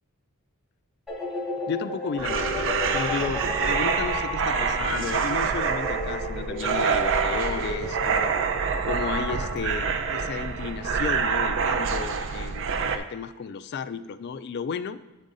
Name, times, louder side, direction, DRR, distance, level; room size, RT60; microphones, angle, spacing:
sound 1, 1.1-9.6, left 2 dB, 5° right, 2.0 m, -33 dB
voice 1, 1.7-8.3 8.8-15.0, left 6 dB, 50° left, 12 dB, 0.3 m, -33 dB
sound 2, 2.2-13.0, right 6 dB, 60° right, 0.5 m, -26 dB
8.1 x 5.1 x 3.9 m, 1.1 s
head